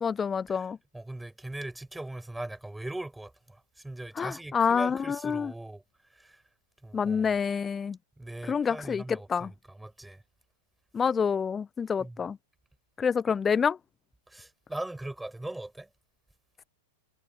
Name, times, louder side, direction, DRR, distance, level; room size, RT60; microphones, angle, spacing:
voice 1, 0.0-0.8 4.2-5.5 6.9-8.0 8.5-9.5 10.9-12.4 13.0-13.8, left 6 dB, 20° left, 0.5 m, -27 dB
voice 2, 0.9-5.8 6.1-6.4 6.8-7.3 8.2-10.2 12.0-12.2 14.3-15.9, right 2 dB, 5° right, 5.7 m, -40 dB
figure-of-eight pair, 100°, 0 cm